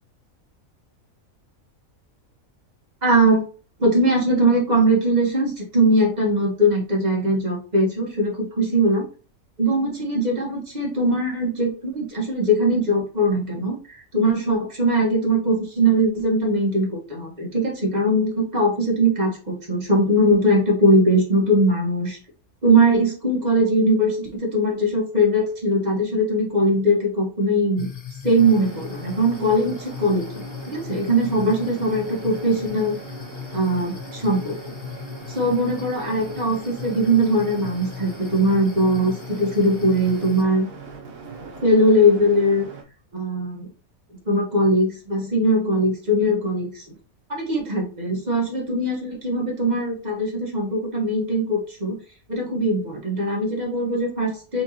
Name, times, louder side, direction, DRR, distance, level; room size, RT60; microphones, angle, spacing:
voice 1, 3.0-3.4 3.8-9.1 9.6-22.2 22.6-33.0 33.5-34.6 35.3-40.7 41.6-42.7 43.1-43.7 44.2-46.8 47.3-52.0 52.3-54.6, right 1 dB, 30° right, -2 dB, 1.5 m, -21 dB
sound 1, 27.8-40.4, left 9 dB, 65° left, 0.4 m, -38 dB
sound 2, 28.4-42.8, right 4 dB, 75° right, 1.3 m, -40 dB
4.5 x 3.7 x 2.8 m, 0.38 s
omnidirectional pair, 1.5 m